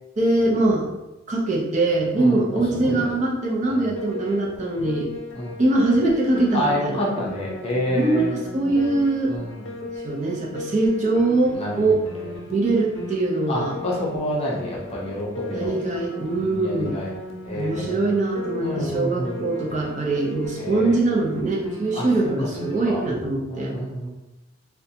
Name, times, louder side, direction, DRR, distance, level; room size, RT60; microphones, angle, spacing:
voice 1, 0.2-0.9 1.3-5.1 5.6-7.0 7.9-9.3 9.8-12.0 12.5-13.8 15.5-17.0 17.5-23.8, right 2 dB, 35° right, -3 dB, 0.5 m, -22 dB
voice 2, 2.1-3.1 3.6-3.9 5.3-5.6 6.5-8.3 9.3-9.7 11.5-12.3 13.5-15.7 16.3-17.1 17.4-18.0 18.6-19.4 20.6-21.0 21.9-22.5 22.8-23.0 23.5-24.1, equal, 30° left, -4 dB, 0.5 m, -28 dB
Piano, 4.0-23.1, left 2 dB, 85° left, 0.5 m, -37 dB
2.5 x 2.2 x 2.7 m, 1.0 s
head